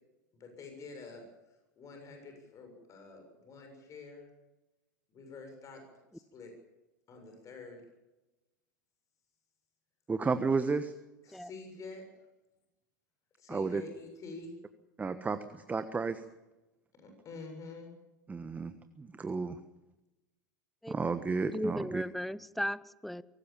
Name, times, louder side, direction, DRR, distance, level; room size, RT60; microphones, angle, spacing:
voice 1, 0.3-4.3 5.1-5.8 6.1-6.5 7.1-7.9 11.3-12.0 13.4-14.6 16.9-17.9, left 3 dB, 35° left, 4 dB, 7.1 m, -48 dB
voice 2, 10.1-10.9 13.5-13.8 15.0-16.2 18.3-19.6 20.9-22.0, right 4 dB, 15° right, 10 dB, 1.3 m, -32 dB
voice 3, 21.4-23.2, equal, ahead, 19 dB, 0.8 m, -36 dB
23.5 x 18.5 x 7.4 m, 1.0 s
hypercardioid pair, 90°, 10 cm